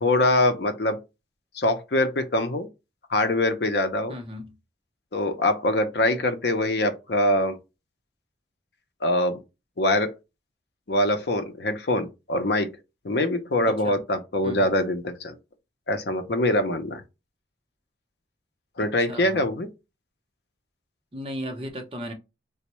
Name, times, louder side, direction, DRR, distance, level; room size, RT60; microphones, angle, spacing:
voice 1, 0.0-1.0 1.5-2.7 3.1-4.1 5.1-7.6 9.0-9.4 9.8-10.1 10.9-12.7 13.0-15.3 15.9-17.0 18.8-19.7, left 1 dB, 60° left, 0.6 m, -23 dB
voice 2, 4.1-4.5 13.7-14.0 14.4-14.7 19.1-19.4 21.1-22.1, equal, 30° right, 0.7 m, -35 dB
4.3 x 2.0 x 2.9 m
head